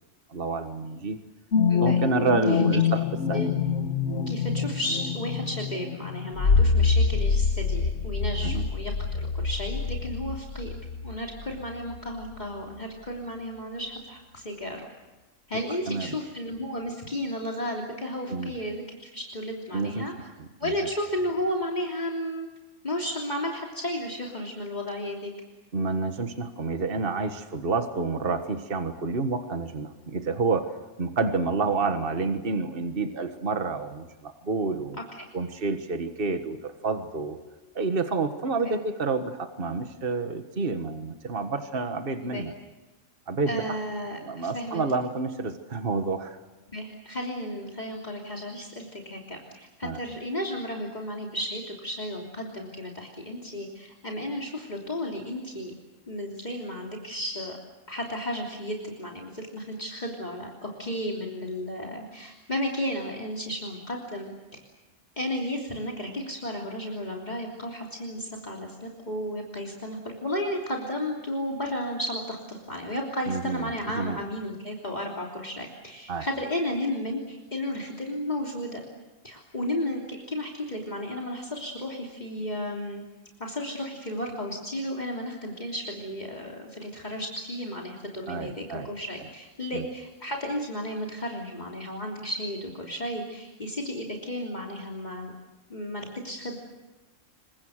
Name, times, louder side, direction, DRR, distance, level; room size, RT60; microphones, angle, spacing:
voice 1, 0.3-1.2 1.8-3.0 3.3-3.4 8.4-8.6 15.9-16.2 18.3-18.5 19.7-20.1 20.4-20.7 25.7-35.0 35.3-37.4 37.8-42.5 43.3-43.8 44.2-46.4 49.8-50.0 73.3-73.7 74.0-74.2 76.1-76.3 88.3-88.9 89.7-89.9, right 4 dB, 50° right, 7 dB, 1.7 m, -29 dB
sound 1, 1.5-12.0 12.3-12.4, left 5 dB, 65° left, 1.5 m, -25 dB
voice 2, 4.3-10.7 11.0-14.9 15.5-20.1 20.6-22.5 22.8-25.3 42.2-42.4 43.5-44.8 46.7-55.7 56.1-57.6 57.9-64.6 65.2-78.8 79.2-83.0 83.4-95.3 95.7-96.6, equal, 35° left, -1 dB, 3.3 m, -33 dB
28.0 x 24.5 x 6.5 m, 1.1 s
omnidirectional pair, 1.3 m